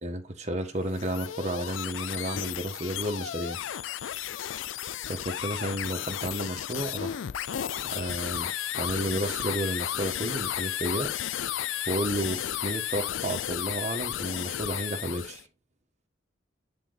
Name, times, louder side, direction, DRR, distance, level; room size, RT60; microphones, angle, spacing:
voice 1, 0.0-3.6 5.0-7.2 7.9-11.1 11.9-15.4, right 1 dB, 40° right, 1.5 m, -32 dB
sound 1, 0.8-15.4, left 11 dB, 85° left, 0.4 m, -33 dB
10.0 x 3.9 x 4.0 m
head